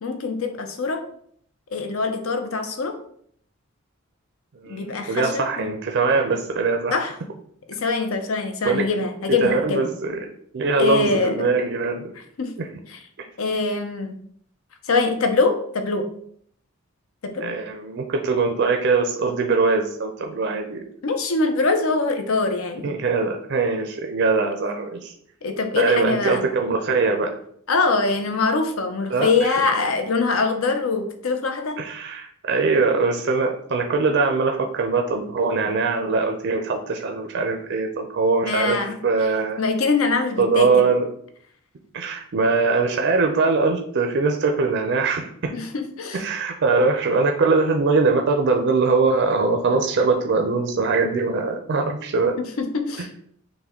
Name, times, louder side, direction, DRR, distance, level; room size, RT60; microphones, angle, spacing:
voice 1, 0.0-1.0 1.7-3.0 4.7-5.7 6.9-7.1 7.8-9.9 10.8-11.5 12.4-12.5 12.9-13.0 13.4-14.2 14.9-16.1 17.2-17.5 21.0-22.9 25.4-26.4 27.7-31.8 38.4-39.0 39.6-40.7 45.5-46.2 52.4-53.1, left 4 dB, 70° left, 7 dB, 0.6 m, -23 dB
voice 2, 4.6-7.0 8.6-8.9 9.4-10.2 10.5-12.1 12.6-12.7 17.4-20.8 22.8-25.1 25.8-27.4 29.1-29.5 31.8-39.6 40.4-41.0 41.9-45.5 46.1-52.4, right 4 dB, 55° right, 4 dB, 0.4 m, -22 dB
5.7 x 2.1 x 3.6 m, 0.64 s
head